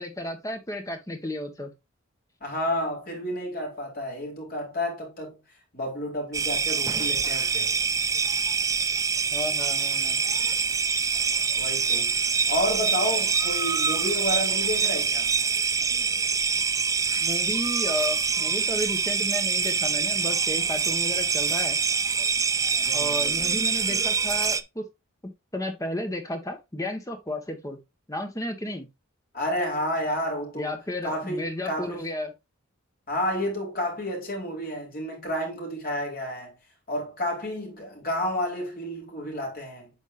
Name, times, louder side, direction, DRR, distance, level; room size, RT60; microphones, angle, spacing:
voice 1, 0.0-1.7 9.3-10.2 17.2-21.8 22.9-24.8 25.5-27.8 28.1-28.9 30.6-32.3, left 1 dB, 15° left, 1.6 m, -33 dB
voice 2, 2.4-5.4 5.7-7.7 11.6-12.2 12.5-15.3 22.8-23.4 29.3-30.7 31.0-32.0 33.1-36.5 36.9-39.9, left 1 dB, 45° left, 4.3 m, -30 dB
sound 1, 6.3-24.6, right 5 dB, 15° right, 0.4 m, -25 dB
8.9 x 5.3 x 2.7 m
head